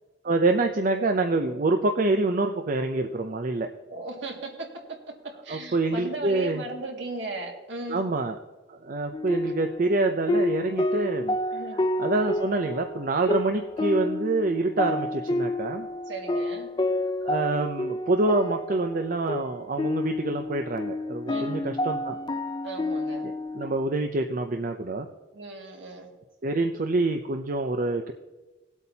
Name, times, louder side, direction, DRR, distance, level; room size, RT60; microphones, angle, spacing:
voice 1, 0.2-3.7 5.5-6.6 7.9-8.3 8.7-11.6 12.0-15.9 17.2-22.2 23.5-25.1 26.4-28.1, right 2 dB, 45° right, 5 dB, 0.5 m, -26 dB
voice 2, 3.9-8.1 11.5-11.8 16.1-16.8 21.3-21.7 22.6-23.3 25.3-26.2, right 2 dB, 65° right, 1 dB, 2.1 m, -37 dB
sound 1, 9.1-23.7, left 1 dB, 25° left, 0.4 m, -29 dB
19.5 x 8.2 x 2.8 m, 1.2 s
head